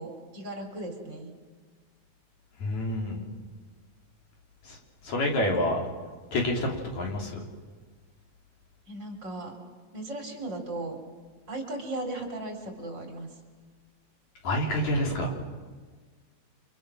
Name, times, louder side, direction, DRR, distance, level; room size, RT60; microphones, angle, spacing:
voice 1, 0.0-1.3 8.9-9.5 9.9-11.0 11.5-13.3, right 2 dB, 35° right, 3 dB, 4.2 m, -36 dB
voice 2, 2.6-3.2 4.6-4.8 5.0-5.8 6.3-7.4 14.4-15.3, left 1 dB, 65° left, 0 dB, 4.7 m, -28 dB
29.5 x 26.0 x 6.3 m, 1.5 s
omnidirectional pair, 3.4 m